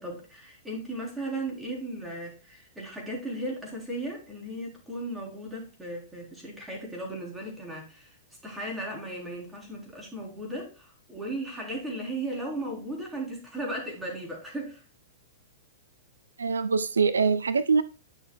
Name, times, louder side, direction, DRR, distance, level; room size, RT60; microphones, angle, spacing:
voice 1, 0.0-8.2 8.4-14.8, right 1 dB, 10° right, 3.8 m, -36 dB
voice 2, 16.4-17.8, right 5 dB, 85° right, 0.5 m, -23 dB
10.5 x 6.5 x 2.3 m
hypercardioid pair, 110°, 0 cm